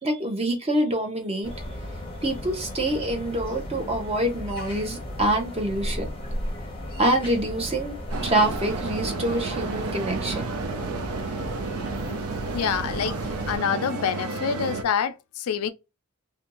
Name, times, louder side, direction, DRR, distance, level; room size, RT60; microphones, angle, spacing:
voice 1, 0.0-1.5 2.2-6.1 7.0-7.9 8.2-10.6, right 1 dB, 25° right, 0.7 m, -26 dB
sound 1, 1.4-13.6, left 1 dB, 25° left, 0.6 m, -35 dB
sound 2, 8.1-14.8, right 4 dB, 75° right, 0.4 m, -32 dB
voice 2, 12.5-13.2 13.5-15.7, left 7 dB, 75° left, 0.4 m, -26 dB
2.6 x 2.2 x 2.8 m
head